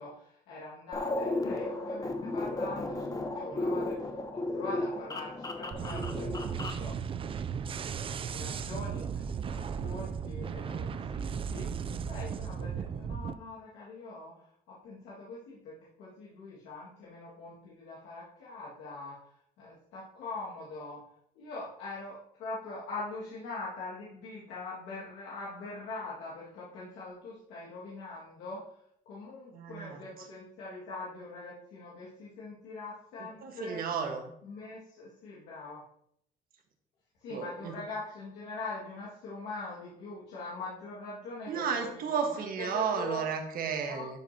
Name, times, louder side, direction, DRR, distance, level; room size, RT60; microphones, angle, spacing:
voice 1, 0.0-7.0 7.6-21.0 21.4-28.7 29.1-33.8 34.4-35.8 37.2-43.2 43.8-44.2, left 3 dB, 85° left, -7 dB, 2.0 m, -43 dB
sound 1, 0.9-6.9, left 2 dB, 20° left, 0.9 m, -34 dB
sound 2, 5.7-13.3, right 7 dB, 30° right, 0.4 m, -36 dB
voice 2, 29.5-30.0 33.4-34.3 37.3-37.8 41.5-44.2, right 6 dB, 60° right, 4 dB, 1.4 m, -33 dB
11.0 x 4.9 x 2.9 m, 0.71 s
cardioid pair, 110°, 17 cm